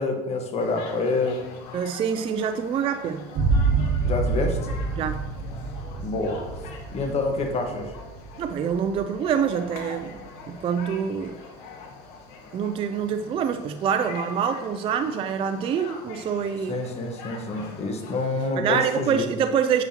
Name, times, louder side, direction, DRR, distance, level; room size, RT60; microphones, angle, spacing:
voice 1, 0.0-1.5 4.0-4.6 6.0-7.9 16.7-19.2, left 3 dB, 30° left, 3 dB, 1.3 m, -27 dB
sound 1, 0.6-18.5, left 4 dB, 80° left, 1.6 m, -43 dB
voice 2, 1.7-3.6 5.0-5.3 8.4-10.2 10.5-11.4 12.5-16.8 18.6-19.8, right 7 dB, 25° right, 8 dB, 0.3 m, -26 dB
sound 2, 3.3-10.7, right 4 dB, 55° right, 1.6 m, -28 dB
9.4 x 7.0 x 2.9 m, 1.1 s
cardioid pair, 145°, 21 cm